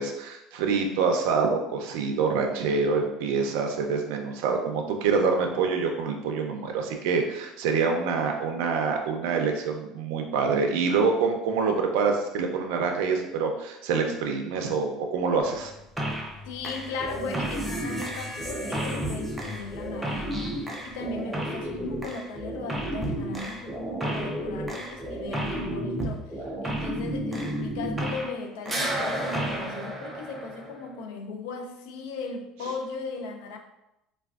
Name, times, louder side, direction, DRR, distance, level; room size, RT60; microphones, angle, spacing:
voice 1, 0.0-15.7, right 5 dB, 85° right, 3 dB, 0.4 m, -26 dB
Truck, 15.4-27.7, left 3 dB, 20° left, 1.2 m, -48 dB
sound 1, 16.0-16.4 16.6-28.4 28.7-30.9, right 1 dB, 5° right, 0.3 m, -32 dB
voice 2, 16.5-33.6, left 3 dB, 85° left, 4 dB, 0.4 m, -37 dB
3.3 x 2.2 x 2.3 m, 0.89 s
cardioid pair, 175°, 0 cm